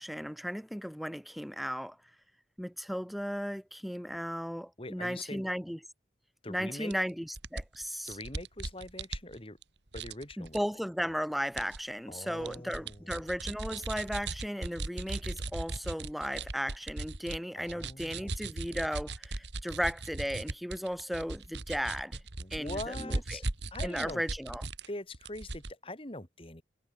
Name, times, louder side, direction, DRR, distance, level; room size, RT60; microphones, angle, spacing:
voice 1, 0.0-2.0 2.6-5.8 6.5-8.2 10.4-22.2 22.5-23.4 23.8-24.7, equal, ahead, 3.1 m, -35 dB
voice 2, 4.8-5.4 6.4-6.9 8.1-9.6 9.9-10.6 12.1-13.1 17.6-18.3 22.4-23.4 23.7-24.2 24.9-26.6, left 1 dB, 30° left, 3.4 m, -43 dB
sound 1, 6.9-7.0 7.4-9.6 9.9-10.6 11.6-11.8 12.2-17.4 17.7-24.9 25.1-25.7, right 2 dB, 85° right, 2.2 m, -38 dB
head